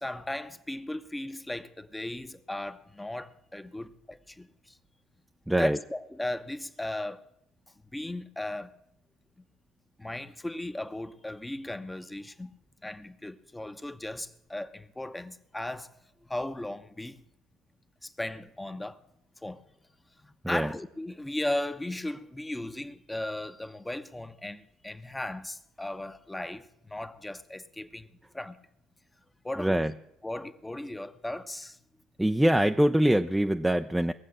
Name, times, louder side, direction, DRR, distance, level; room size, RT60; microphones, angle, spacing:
voice 1, 0.0-4.8 5.6-7.3 7.9-8.7 10.0-12.5 12.8-15.9 16.2-17.2 18.0-19.0 19.4-19.6 20.2-28.1 28.3-28.6 29.4-29.8 30.2-31.8, left 1 dB, 10° left, 1.0 m, -36 dB
voice 2, 5.5-5.8 20.4-20.7 29.6-29.9 32.2-34.1, right 1 dB, 5° right, 0.5 m, -24 dB
20.0 x 7.5 x 6.5 m
hypercardioid pair, 65°, 0 cm